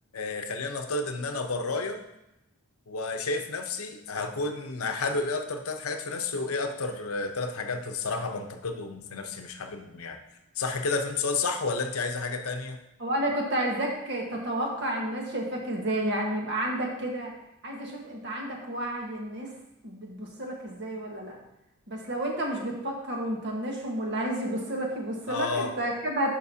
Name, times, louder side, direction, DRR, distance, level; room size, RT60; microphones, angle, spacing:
voice 1, 0.1-2.0 2.9-10.2 10.6-12.8 25.3-25.7, left 3 dB, 90° left, 6 dB, 0.7 m, -31 dB
voice 2, 13.0-17.3 17.6-19.5 19.8-21.4 21.9-26.4, right 1 dB, 55° right, 0 dB, 1.4 m, -31 dB
10.5 x 5.2 x 2.8 m, 0.88 s
head